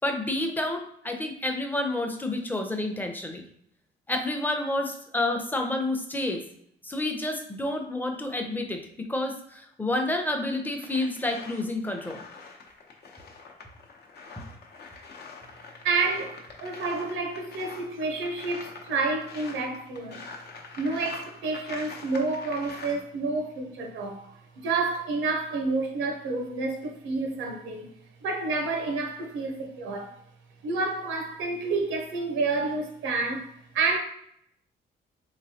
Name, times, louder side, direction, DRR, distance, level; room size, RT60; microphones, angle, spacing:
voice 1, 0.0-3.4 4.1-6.4 6.8-12.2, left 2 dB, 10° left, 0.6 m, -29 dB
sound 1, 10.8-23.0, left 4 dB, 55° left, 0.8 m, -44 dB
voice 2, 15.8-20.2 20.8-27.9 28.2-30.1 30.6-33.5 33.7-34.0, right 3 dB, 90° right, 0.7 m, -29 dB
3.4 x 3.0 x 2.7 m
cardioid pair, 90°, 20 cm